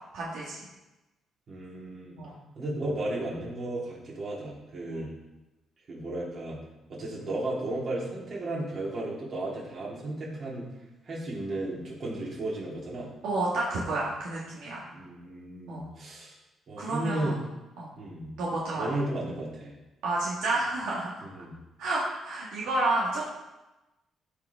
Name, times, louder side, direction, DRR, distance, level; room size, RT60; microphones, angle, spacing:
voice 1, 0.1-0.7 2.2-2.4 13.2-14.8 15.7-15.9 16.8-17.3 17.8-17.9 18.4-18.9 20.0-21.2 21.8-23.3, right 2 dB, 85° right, -5 dB, 1.8 m, -30 dB
voice 2, 1.5-2.2 2.5-5.1 5.9-6.6 6.9-10.7 11.0-13.1 14.9-16.3 16.7-17.4 17.9-18.3 18.7-19.8 21.2-21.5, right 1 dB, 50° right, -5 dB, 3.3 m, -34 dB
13.5 x 4.8 x 3.6 m, 1.0 s
cardioid pair, 90°, 0 cm